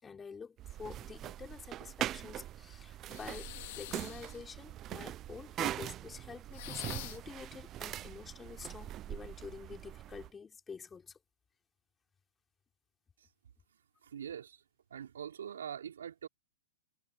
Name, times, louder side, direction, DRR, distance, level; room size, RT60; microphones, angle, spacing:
voice 1, 0.0-11.2, left 5 dB, 15° left, 5.9 m, -48 dB
sound 1, 0.6-10.3, right 12 dB, 30° right, 0.9 m, -42 dB
sound 2, 3.1-4.4 6.5-7.4, left 19 dB, 55° left, 2.4 m, -46 dB
voice 2, 14.0-14.6 14.9-16.3, right 8 dB, 85° right, 5.3 m, -43 dB
hypercardioid pair, 135°, 0 cm